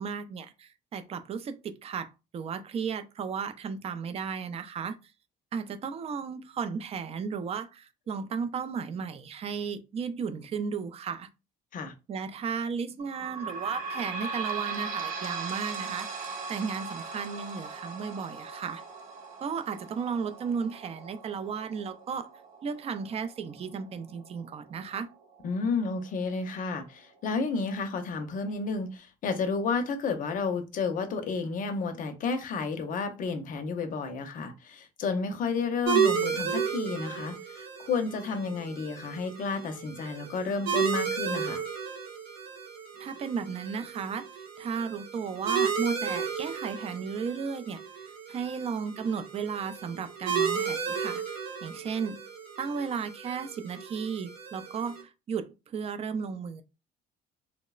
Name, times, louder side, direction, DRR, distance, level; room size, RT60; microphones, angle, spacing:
voice 1, 0.0-5.0 5.5-11.3 12.1-16.1 16.5-18.8 19.4-22.3 22.6-25.1 43.0-44.2 44.6-52.2 52.6-56.6, right 6 dB, 35° right, 0.4 m, -34 dB
sound 1, 13.0-26.2 26.7-26.8 27.1-27.2 28.0-28.1, right 4 dB, 55° right, 0.8 m, -39 dB
voice 2, 25.4-41.6, left 4 dB, 50° left, 0.6 m, -31 dB
sound 2, 35.9-55.0, right 7 dB, 90° right, 1.2 m, -33 dB
3.0 x 2.0 x 2.3 m
cardioid pair, 110°, 17 cm